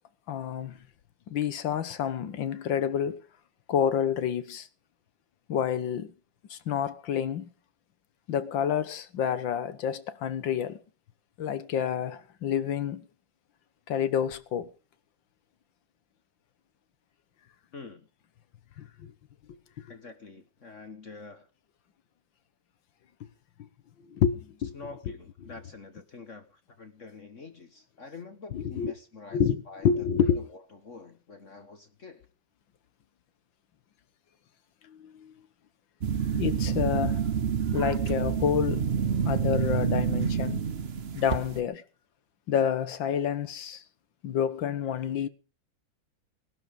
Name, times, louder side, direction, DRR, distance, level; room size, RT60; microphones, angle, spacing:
voice 1, 0.3-0.8 1.3-3.3 3.7-4.7 5.5-6.1 6.5-7.5 8.3-10.8 11.4-13.0 13.9-14.7 18.8-19.1 24.1-24.8 25.1-25.2 28.5-28.9 29.3-30.5 34.9-35.3 36.3-37.3 37.7-38.9 39.2-40.6 41.1-41.8 42.5-43.8 44.2-45.3, left 8 dB, 75° left, 1.9 m, -28 dB
voice 2, 17.7-18.1 19.9-21.5 24.7-29.9 30.2-32.3, left 4 dB, 45° left, 1.6 m, -46 dB
sound 1, 36.0-41.6, right 7 dB, 45° right, 0.9 m, -28 dB
19.5 x 12.0 x 5.2 m
omnidirectional pair, 2.1 m